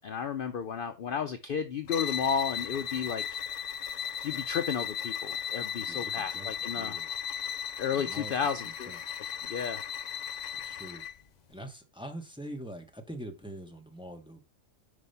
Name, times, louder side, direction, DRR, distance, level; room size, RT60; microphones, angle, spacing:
voice 1, 0.0-3.2 4.2-7.0 7.8-8.9 9.4-9.8, left 7 dB, 55° left, 8 dB, 0.6 m, -32 dB
sound 1, 1.9-11.2, left 8 dB, 85° left, 0.3 m, -36 dB
voice 2, 5.8-7.1 7.9-9.1 10.5-11.0 11.5-14.4, right 1 dB, 5° right, 3 dB, 1.1 m, -44 dB
5.3 x 4.8 x 5.5 m, 0.28 s
omnidirectional pair, 1.3 m